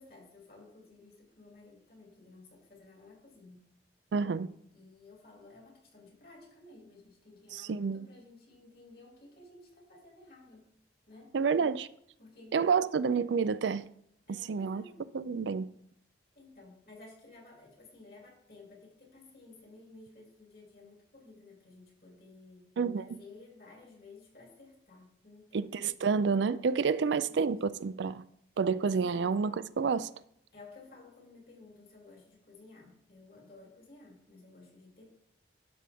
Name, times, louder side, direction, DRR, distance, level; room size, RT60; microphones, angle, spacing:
voice 1, 0.0-3.8 4.7-10.7 11.1-11.4 12.2-12.9 14.3-15.1 16.3-25.7 26.9-27.5 29.1-29.3 30.5-35.2, left 2 dB, 55° left, 2.8 m, -55 dB
voice 2, 4.1-4.5 7.5-8.1 11.3-11.9 12.5-13.8 14.3-14.8 15.1-15.7 22.8-23.0 25.5-28.2 28.6-30.1, right 5 dB, 75° right, 0.4 m, -29 dB
12.0 x 6.2 x 3.5 m
head